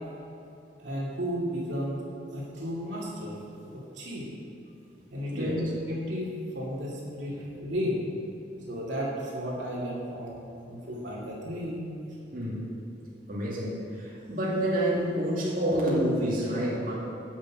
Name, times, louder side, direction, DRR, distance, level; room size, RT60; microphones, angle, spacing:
voice 1, 0.8-2.0 2.3-3.4 3.7-4.3 5.1-8.0 8.7-10.4 10.7-11.9, equal, 70° right, -5 dB, 2.4 m, -33 dB
voice 2, 12.3-12.7 13.3-16.9, right 1 dB, 50° right, -7 dB, 2.5 m, -28 dB
10.0 x 6.6 x 7.3 m, 2.8 s
head